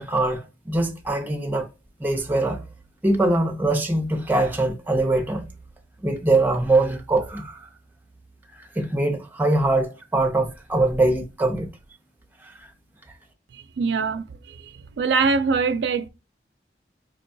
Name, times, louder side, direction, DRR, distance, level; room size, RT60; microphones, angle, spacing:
voice 1, 0.0-1.7 2.0-2.6 3.0-5.5 6.0-7.7 8.5-11.7, right 2 dB, 10° right, 0.6 m, -22 dB
voice 2, 13.8-14.2 15.0-16.1, right 4 dB, 80° right, 0.4 m, -22 dB
5.1 x 2.2 x 2.5 m
head